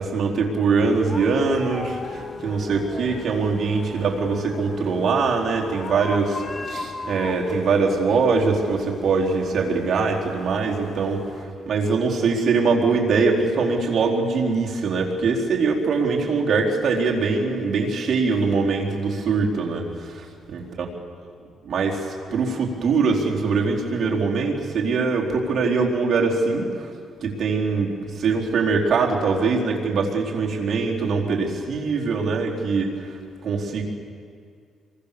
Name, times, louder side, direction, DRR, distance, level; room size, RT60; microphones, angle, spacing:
voice 1, 0.0-20.6 21.6-26.9 27.2-33.1 33.4-33.8, right 4 dB, 55° right, -1 dB, 4.3 m, -22 dB
sound 1, 0.8-11.4, left 3 dB, 30° left, 2.1 m, -37 dB
26.5 x 24.0 x 7.0 m, 2.2 s
cardioid pair, 90°, 0 cm